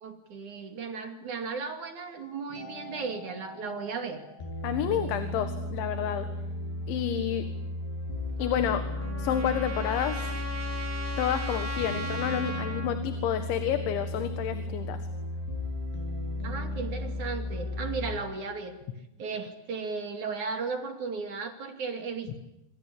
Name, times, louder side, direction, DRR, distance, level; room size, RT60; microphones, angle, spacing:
voice 1, 0.0-4.2 11.9-12.2 16.4-18.7 19.2-22.4, right 5 dB, 50° right, 6 dB, 3.5 m, -35 dB
sound 1, 2.5-18.1, left 1 dB, 65° left, 9.0 m, -35 dB
voice 2, 4.6-6.3 6.9-7.5 8.4-8.8 9.2-10.3 11.2-15.0, left 9 dB, 85° left, 8 dB, 4.1 m, -29 dB
Trumpet, 8.4-12.9, equal, 15° right, 2.7 m, -38 dB
27.0 x 25.5 x 8.7 m, 0.91 s
omnidirectional pair, 5.2 m